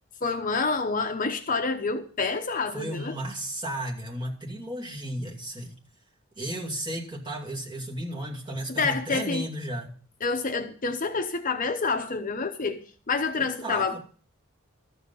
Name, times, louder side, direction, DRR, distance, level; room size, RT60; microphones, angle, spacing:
voice 1, 0.2-3.1 8.7-9.5 10.2-14.0, left 4 dB, 40° left, 0.9 m, -28 dB
voice 2, 2.7-5.7 6.4-9.9 13.4-14.0, right 1 dB, 25° right, 2.5 m, -34 dB
13.0 x 8.1 x 5.5 m
head